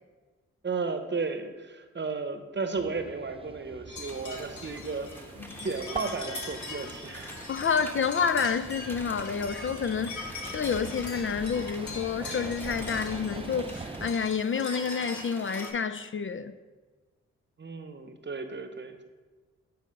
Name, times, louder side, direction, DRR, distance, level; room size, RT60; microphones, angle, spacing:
voice 1, 0.6-5.1 5.6-7.4 17.6-19.0, right 4 dB, 40° right, 0.8 m, -34 dB
sound 1, 2.8-14.1, right 3 dB, 20° right, 0.5 m, -43 dB
sound 2, 3.9-15.7, left 3 dB, 70° left, 1.8 m, -42 dB
sound 3, 4.0-15.7, equal, 5° left, 1.0 m, -48 dB
voice 2, 7.5-16.5, left 6 dB, 45° left, 0.4 m, -29 dB
8.7 x 4.0 x 5.3 m
cardioid pair, 60°, 30 cm